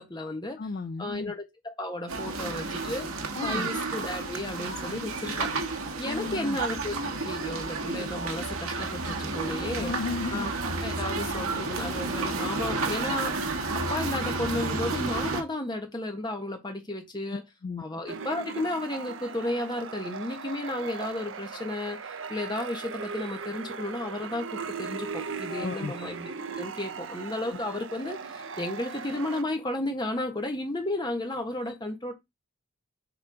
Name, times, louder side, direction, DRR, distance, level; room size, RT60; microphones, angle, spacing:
voice 1, 0.0-0.6 1.0-3.1 3.4-5.5 6.0-9.9 10.3-10.5 10.8-13.4 13.9-17.4 17.8-32.1, left 1 dB, 20° left, 1.4 m, -33 dB
voice 2, 0.6-1.3 3.4-3.7 6.0-6.6 9.8-10.5 17.6-17.8 25.5-25.9, left 4 dB, 40° left, 0.3 m, -34 dB
sound 1, 2.1-15.4, right 3 dB, 80° right, 1.3 m, -31 dB
sound 2, 18.1-29.4, right 5 dB, 60° right, 0.6 m, -38 dB
6.9 x 3.6 x 4.8 m
head